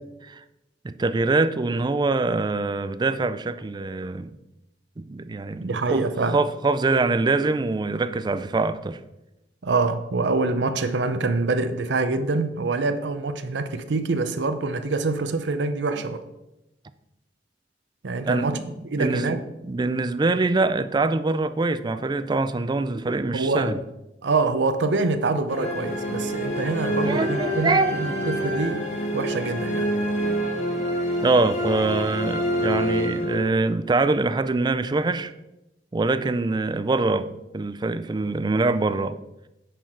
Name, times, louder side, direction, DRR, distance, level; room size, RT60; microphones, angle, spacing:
voice 1, 0.8-4.4 5.0-6.0 6.3-9.0 18.3-19.3 19.6-23.8 27.0-28.0 31.2-35.3 35.9-39.2, right 3 dB, 25° right, 0.4 m, -24 dB
voice 2, 5.6-6.4 9.6-16.2 18.0-18.6 18.9-19.4 23.3-23.7 24.2-28.9 29.1-29.9, right 3 dB, 80° right, 0.6 m, -25 dB
sound 1, 25.5-33.8, equal, 45° left, 1.7 m, -27 dB
9.8 x 4.5 x 4.7 m
head